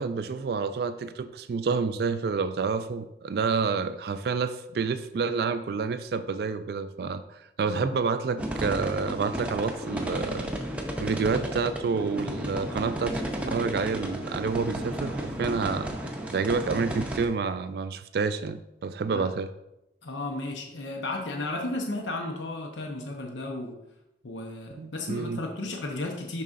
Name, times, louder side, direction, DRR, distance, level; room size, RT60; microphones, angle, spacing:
voice 1, 0.0-10.5 11.0-19.5 24.8-25.4, right 5 dB, 55° right, 11 dB, 0.3 m, -29 dB
sound 1, 8.4-17.2, equal, 5° right, 0.6 m, -33 dB
voice 2, 20.0-23.8 24.2-26.4, left 2 dB, 85° left, 2 dB, 0.8 m, -34 dB
11.0 x 4.1 x 2.5 m, 0.87 s
head